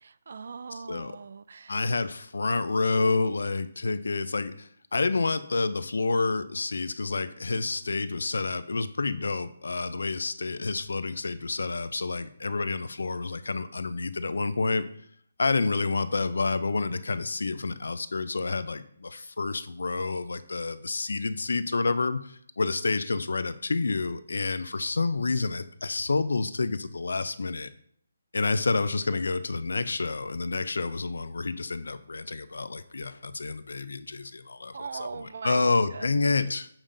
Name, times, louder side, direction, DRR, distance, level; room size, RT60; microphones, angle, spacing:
voice 1, 0.0-1.8 34.7-35.6 35.9-36.4, right 5 dB, 60° right, 16 dB, 0.3 m, -40 dB
voice 2, 0.7-1.2 1.7-14.9 15.4-27.7 28.3-36.7, left 3 dB, 80° left, 14 dB, 0.4 m, -29 dB
7.2 x 5.1 x 2.6 m, 0.64 s
hypercardioid pair, 160°, 0 cm